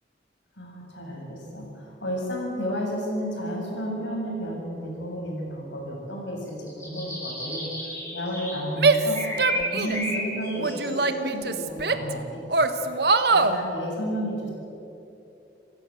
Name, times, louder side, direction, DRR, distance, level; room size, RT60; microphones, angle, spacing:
voice 1, 0.6-7.7 8.1-12.8 13.3-14.5, equal, 90° left, -1 dB, 7.7 m, -32 dB
sound 1, 6.5-8.6 8.8-11.2, left 1 dB, 15° left, 7.9 m, -33 dB
Female speech woman speaking / Yell, 8.8-10.1 10.6-12.1 12.5-13.6, right 3 dB, 60° right, 1.3 m, -22 dB
28.5 x 15.5 x 7.8 m, 2.8 s
head